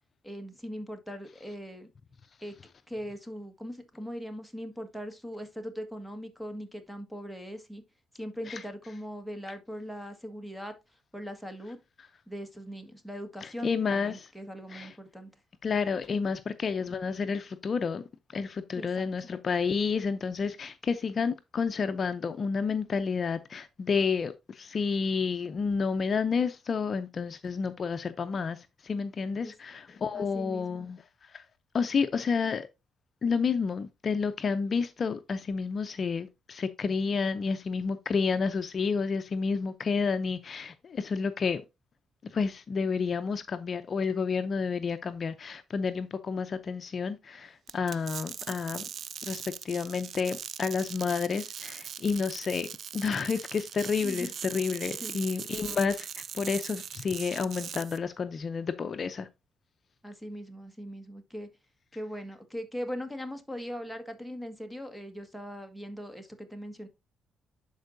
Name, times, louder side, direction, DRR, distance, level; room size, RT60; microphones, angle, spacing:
voice 1, 0.2-1.9 2.4-2.6 2.9-7.8 8.1-10.7 11.1-11.8 12.3-15.3 18.7-19.0 29.4-29.5 30.1-30.9 54.0-54.3 55.0-55.2 60.0-61.5 61.9-66.9, equal, ahead, 1.6 m, -40 dB
voice 2, 13.4-14.3 14.7-15.0 15.6-18.0 18.3-31.5 31.7-32.7 33.2-41.6 42.2-48.8 49.2-52.7 52.9-59.3, left 5 dB, 45° left, 0.5 m, -30 dB
sound 1, 47.7-58.0, right 8 dB, 60° right, 0.4 m, -40 dB
11.0 x 4.5 x 2.6 m
cardioid pair, 90°, 0 cm